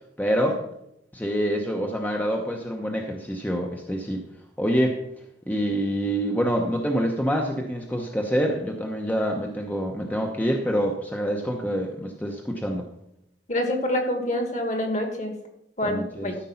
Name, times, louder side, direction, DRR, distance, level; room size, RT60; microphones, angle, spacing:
voice 1, 0.2-0.6 1.1-4.3 4.6-5.0 5.5-12.9 15.8-16.3, equal, 10° left, 2 dB, 0.8 m, -26 dB
voice 2, 13.5-15.3 15.8-16.4, left 1 dB, 40° left, 4 dB, 1.9 m, -26 dB
13.5 x 5.3 x 5.6 m, 0.80 s
head